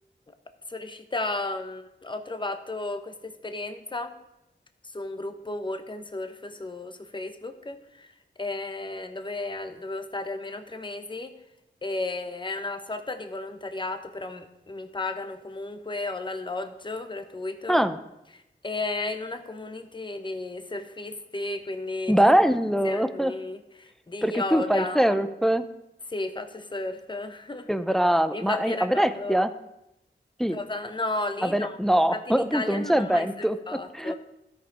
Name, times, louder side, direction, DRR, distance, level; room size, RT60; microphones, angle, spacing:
voice 1, 0.7-4.1 4.8-8.1 8.4-11.3 11.8-17.8 18.3-22.2 22.8-25.2 26.1-27.7 28.3-29.5 30.5-31.8 32.1-34.2, left 2 dB, 25° left, 8 dB, 0.9 m, -34 dB
voice 2, 22.1-23.3 24.2-25.7 27.7-29.5 30.4-30.6 31.4-33.6 33.9-34.2, equal, ahead, 11 dB, 0.5 m, -23 dB
13.0 x 5.1 x 4.7 m, 0.89 s
wide cardioid pair, 60°, 19 cm